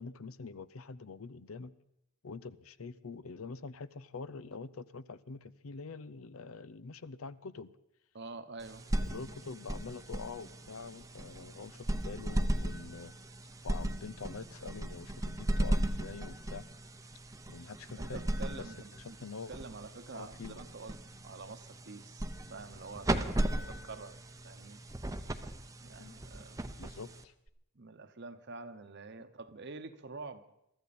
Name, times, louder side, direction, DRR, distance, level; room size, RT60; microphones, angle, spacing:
voice 1, 0.0-1.7 2.2-7.7 9.0-13.1 13.6-16.6 17.5-18.2 18.5-19.5 20.1-20.6 26.0-26.2 26.8-27.3, left 4 dB, 75° left, 16 dB, 0.6 m, -45 dB
voice 2, 8.1-8.9 18.0-24.1 24.4-24.8 25.8-26.6 27.7-30.4, right 3 dB, 55° right, 10 dB, 1.0 m, -47 dB
sound 1, 8.6-27.5, right 1 dB, 15° right, 0.7 m, -37 dB
23.0 x 13.5 x 4.3 m, 0.79 s
head